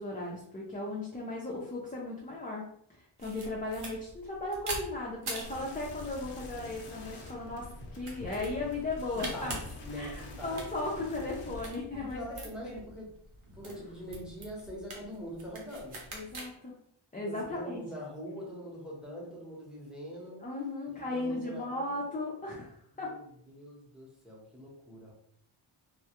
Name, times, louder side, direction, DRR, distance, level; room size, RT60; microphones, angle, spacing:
voice 1, 0.0-2.7 3.0-7.7 7.9-9.6 9.9-12.8 13.6-13.7 16.1-16.7 17.1-17.9 20.4-23.1, left 2 dB, 20° left, -3 dB, 0.4 m, -36 dB
sound 1, 3.2-16.5, right 2 dB, 85° right, 0.8 m, -45 dB
sound 2, 5.4-11.7, left 2 dB, 90° left, 0.7 m, -47 dB
voice 2, 9.1-10.7 11.9-13.1 13.5-16.1 17.1-20.5 20.9-22.0 23.0-25.1, equal, ahead, -4 dB, 0.8 m, -43 dB
2.2 x 2.0 x 2.8 m, 0.66 s
wide cardioid pair, 85°, 49 cm